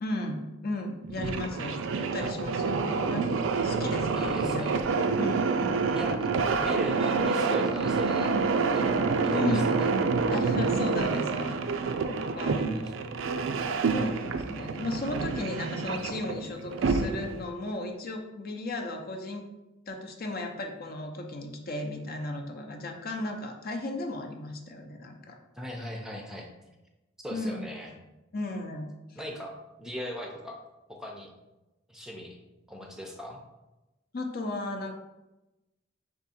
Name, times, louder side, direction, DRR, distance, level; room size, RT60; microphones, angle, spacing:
voice 1, 0.0-3.3 3.6-4.8 5.2-5.5 9.3-9.8 10.3-11.6 12.1-12.6 13.9-19.5 19.9-25.4 27.3-27.7 28.3-29.2 34.1-34.9, left 2 dB, 50° left, 3 dB, 0.6 m, -35 dB
sound 1, 1.0-17.4, right 4 dB, 90° right, 0.4 m, -28 dB
voice 2, 4.2-4.8 5.9-6.3 6.5-8.9 9.2-9.9 12.6-12.8 25.6-26.5 27.2-27.9 29.1-30.6 30.9-31.3 31.9-32.4 32.7-33.4, equal, 5° right, 1 dB, 0.5 m, -39 dB
3.6 x 3.6 x 4.2 m, 1.0 s
head